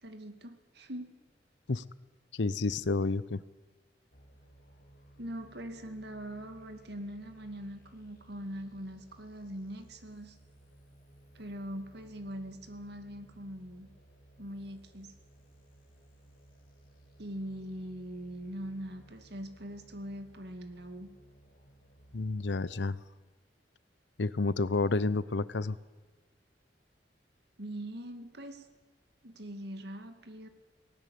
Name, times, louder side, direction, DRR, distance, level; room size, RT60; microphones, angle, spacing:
voice 1, 0.0-1.1 5.2-10.4 11.3-13.9 14.4-15.1 17.2-21.1 27.6-28.7 29.2-30.5, equal, 65° right, 8 dB, 2.2 m, -42 dB
voice 2, 2.3-3.4 22.1-23.0 24.2-25.8, left 3 dB, 75° left, 18 dB, 0.8 m, -30 dB
sound 1, 4.1-22.7, right 1 dB, 55° left, 2.5 m, -59 dB
19.0 x 18.0 x 8.6 m, 1.3 s
head